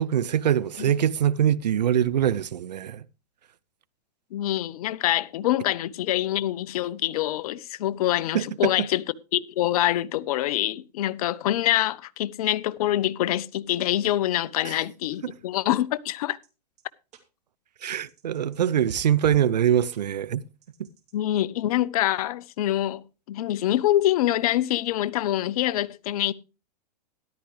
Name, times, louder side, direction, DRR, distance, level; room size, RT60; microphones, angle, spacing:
voice 1, 0.0-3.0 8.3-8.9 14.6-14.7 15.2-15.3 17.8-20.4, right 10 dB, 85° right, 0.7 m, -23 dB
voice 2, 4.3-9.0 9.3-16.4 21.1-26.3, left 14 dB, 60° left, 0.8 m, -25 dB
sound 1, 16.4-16.5 16.8-16.9 17.1-17.2 17.8-18.6 18.9-19.4 19.9-20.0 20.6-21.1, right 7 dB, 35° right, 2.7 m, -45 dB
13.5 x 11.5 x 3.2 m
hypercardioid pair, 120°, 21 cm